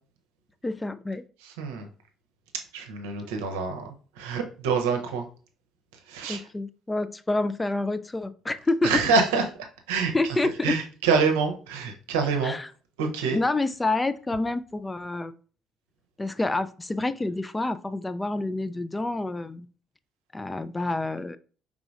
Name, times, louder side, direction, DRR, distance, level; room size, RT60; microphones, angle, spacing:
voice 1, 0.6-1.2 6.3-9.0 10.1-10.7 12.4-12.7 13.3-15.3 16.2-19.7 20.3-21.4, left 2 dB, 15° left, 12 dB, 0.3 m, -28 dB
voice 2, 1.4-1.9 2.7-5.3 6.1-6.4 8.8-9.4 9.9-10.1 10.6-12.6 13.0-13.4, right 5 dB, 70° right, 5 dB, 0.7 m, -26 dB
4.9 x 3.6 x 2.3 m, 0.39 s
figure-of-eight pair, 50°, 0 cm